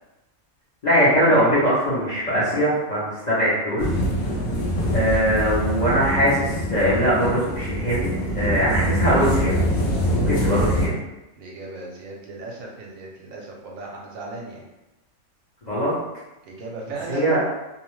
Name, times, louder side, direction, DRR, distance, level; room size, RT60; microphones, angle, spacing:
voice 1, 0.8-3.9 4.9-9.6 10.1-10.9 15.7-15.9 17.1-17.4, equal, 45° left, -10 dB, 0.6 m, -21 dB
sound 1, 3.8-10.9, equal, 85° left, 0.4 m, -24 dB
voice 2, 10.4-11.0 11.4-14.7 16.4-17.4, right 2 dB, 75° right, -2 dB, 1.0 m, -36 dB
2.6 x 2.1 x 3.1 m, 0.98 s
omnidirectional pair, 1.5 m